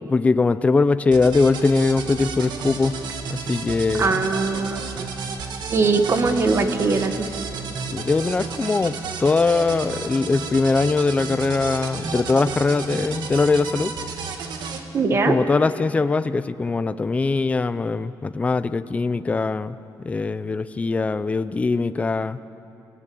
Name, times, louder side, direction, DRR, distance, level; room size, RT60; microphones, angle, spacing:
voice 1, 0.0-3.0 3.3-4.2 7.9-13.9 15.3-22.4, left 3 dB, 20° left, 12 dB, 0.5 m, -21 dB
sound 1, 1.1-14.8, right 5 dB, 80° right, 2.0 m, -32 dB
voice 2, 4.0-5.1 5.7-7.3 14.9-15.3, right 4 dB, 35° right, 7 dB, 1.5 m, -21 dB
29.0 x 17.0 x 8.6 m, 2.9 s
wide cardioid pair, 175°, 7 cm